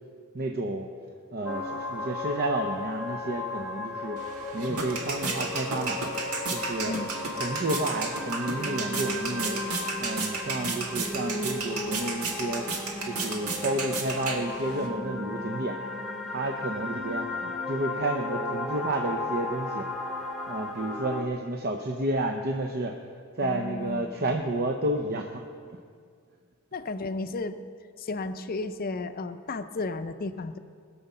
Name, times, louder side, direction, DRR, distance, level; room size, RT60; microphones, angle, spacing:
voice 1, 0.3-0.9 1.3-4.2 4.5-6.0 6.5-6.9 7.3-9.6 10.0-12.7 13.0-15.8 16.3-19.9 20.5-22.9 23.4-25.4, right 1 dB, 45° right, 4 dB, 0.7 m, -31 dB
sound 1, 1.5-21.2, left 2 dB, ahead, 1.1 m, -35 dB
sound 2, 4.2-14.9, right 3 dB, 80° right, 1.7 m, -33 dB
voice 2, 23.4-24.4 26.7-27.6 28.0-30.6, left 3 dB, 40° left, 10 dB, 0.6 m, -34 dB
20.5 x 7.1 x 5.5 m, 2.1 s
head